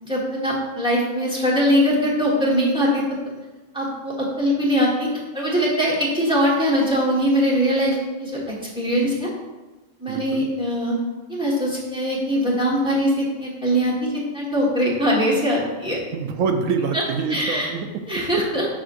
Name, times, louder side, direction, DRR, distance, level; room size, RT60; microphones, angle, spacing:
voice 1, 0.0-3.0 3.7-8.4 8.7-9.3 10.0-10.9 11.3-16.0 16.9-17.0 17.3-17.7 18.1-18.7, equal, 5° right, -6 dB, 1.4 m, -21 dB
voice 2, 10.1-10.5 16.1-18.2, right 5 dB, 75° right, 6 dB, 1.0 m, -26 dB
6.3 x 6.2 x 2.6 m, 1.2 s
omnidirectional pair, 1.4 m